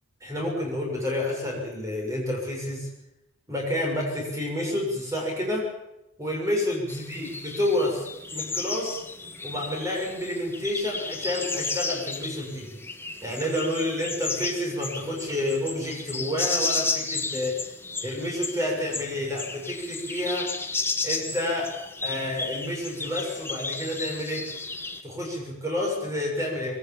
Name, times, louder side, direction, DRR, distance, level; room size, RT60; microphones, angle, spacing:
voice 1, 0.2-2.9 3.5-5.7 6.2-8.0 8.3-9.0 9.4-12.8 13.2-17.5 18.0-20.5 21.0-21.7 22.0-24.4 25.0-26.8, left 1 dB, 15° right, -1 dB, 6.7 m, -29 dB
sound 1, 6.9-25.0, left 4 dB, 10° left, 1.2 m, -33 dB
22.5 x 18.0 x 7.4 m, 0.89 s
head